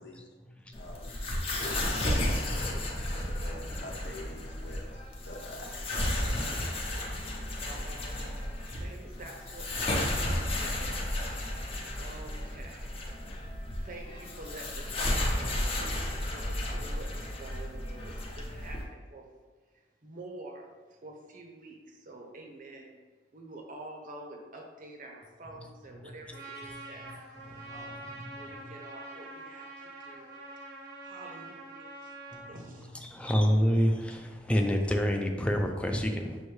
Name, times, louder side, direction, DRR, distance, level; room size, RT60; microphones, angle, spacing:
voice 1, 0.0-0.7 1.1-1.6 25.5-25.6 25.9-26.3 26.6-28.7 32.3-32.6 32.9-36.4, equal, 5° left, 3 dB, 0.4 m, -30 dB
sound 1, 0.7-18.8, left 1 dB, 35° left, 0.7 m, -33 dB
voice 2, 0.8-1.1 1.5-5.8, left 1 dB, 85° left, 0 dB, 0.9 m, -46 dB
voice 3, 7.6-11.2 12.0-12.9 13.8-16.0 16.3-19.2 20.0-20.7 21.0-23.0 23.3-27.0 27.7-28.1 28.3-30.3 31.0-32.1 32.5-33.5, right 2 dB, 50° right, 2 dB, 0.7 m, -47 dB
Trumpet, 26.3-32.5, right 2 dB, 80° right, 1.1 m, -45 dB
6.3 x 2.6 x 3.2 m, 1.4 s
head